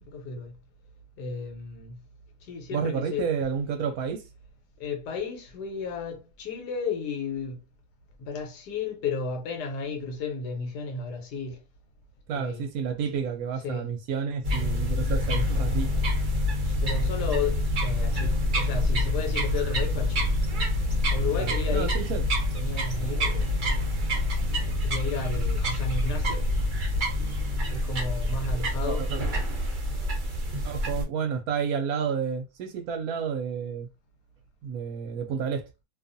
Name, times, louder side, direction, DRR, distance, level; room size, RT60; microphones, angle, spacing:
voice 1, 0.1-0.5 1.2-2.0 2.5-3.3 4.8-7.6 8.2-11.6 12.3-12.7 13.6-13.9 16.6-20.3 21.1-22.0 22.5-23.6 24.8-26.5 27.7-29.1, left 4 dB, 80° left, 1.3 m, -33 dB
voice 2, 2.7-4.2 12.3-15.9 21.4-22.3 28.8-29.2 30.6-33.9 34.6-35.6, right 7 dB, 70° right, 1.0 m, -30 dB
sound 1, 14.4-31.0, left 1 dB, 55° right, 0.5 m, -26 dB
2.6 x 2.4 x 2.5 m
omnidirectional pair, 1.7 m